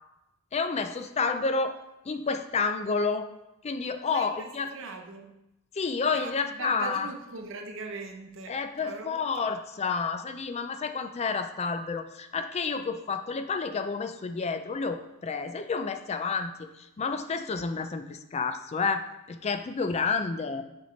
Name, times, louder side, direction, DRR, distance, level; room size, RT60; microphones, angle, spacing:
voice 1, 0.5-1.7 2.1-3.3 3.6-4.7 5.8-7.1 8.5-16.7 17.0-19.0 19.3-20.6, left 4 dB, 30° left, 9 dB, 0.4 m, -30 dB
voice 2, 4.1-5.3 6.1-9.5, right 4 dB, 65° right, 4 dB, 0.9 m, -41 dB
7.5 x 4.3 x 4.4 m, 0.89 s
head